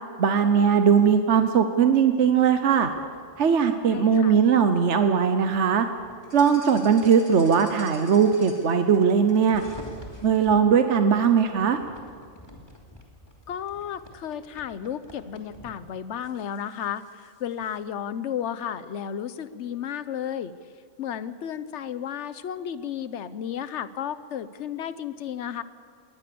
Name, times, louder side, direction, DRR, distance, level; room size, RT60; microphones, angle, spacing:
voice 1, 0.2-2.9 3.4-5.9 6.3-9.6 10.2-11.8, right 7 dB, 65° right, 7 dB, 1.2 m, -20 dB
sound 1, 2.2-10.6 11.1-15.8 16.2-17.8, left 1 dB, 20° left, 2.9 m, -48 dB
voice 2, 3.9-4.4 13.5-20.5 21.0-25.6, left 9 dB, 65° left, 14 dB, 1.1 m, -33 dB
21.0 x 19.0 x 6.9 m, 2.1 s
omnidirectional pair, 1.3 m